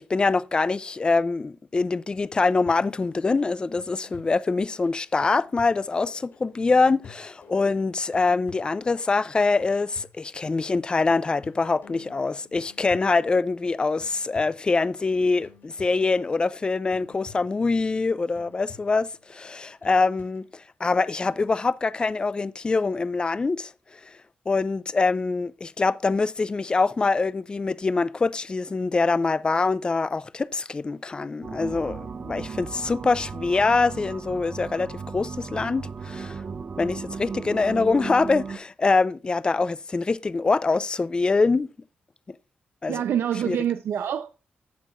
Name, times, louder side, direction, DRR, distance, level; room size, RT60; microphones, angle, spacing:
voice 1, 0.0-23.7 24.0-24.2 24.5-36.4 36.8-41.7 42.3-42.4 42.8-43.0 43.4-43.6, left 3 dB, 25° left, 0.4 m, -24 dB
sound 1, 2.3-20.5, left 6 dB, 75° left, 5.1 m, -51 dB
sound 2, 31.4-38.6, right 5 dB, 40° right, 0.5 m, -36 dB
voice 2, 42.9-44.3, right 9 dB, 85° right, 0.6 m, -26 dB
15.5 x 5.6 x 2.5 m
wide cardioid pair, 125°, 4 cm